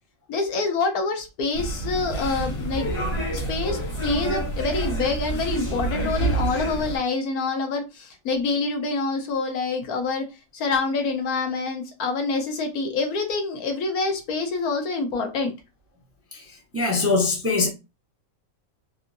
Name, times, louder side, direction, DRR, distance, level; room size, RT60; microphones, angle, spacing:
voice 1, 0.3-2.9 3.3-10.2 10.5-15.5, left 3 dB, 85° left, 1.3 m, -26 dB
sound 1, 1.5-7.0, right 2 dB, 70° left, 1.7 m, -28 dB
voice 2, 16.3-17.7, left 3 dB, 20° right, 0.4 m, -23 dB
3.6 x 2.6 x 2.5 m
omnidirectional pair, 1.5 m